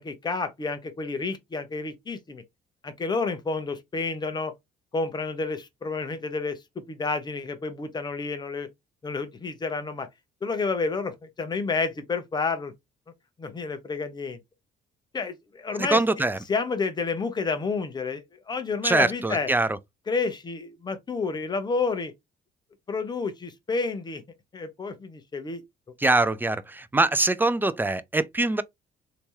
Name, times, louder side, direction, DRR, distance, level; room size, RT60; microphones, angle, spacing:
voice 1, 0.0-2.4 2.8-4.5 4.9-6.6 6.9-8.7 9.0-10.1 10.4-12.7 13.4-14.4 15.1-16.0 16.5-19.5 20.1-22.1 22.9-24.2 24.5-25.6, left 4 dB, 25° left, 0.8 m, -30 dB
voice 2, 15.8-16.4 18.8-19.8 26.0-28.6, right 2 dB, 10° right, 0.3 m, -23 dB
3.3 x 2.9 x 3.0 m
cardioid pair, 110°, 17 cm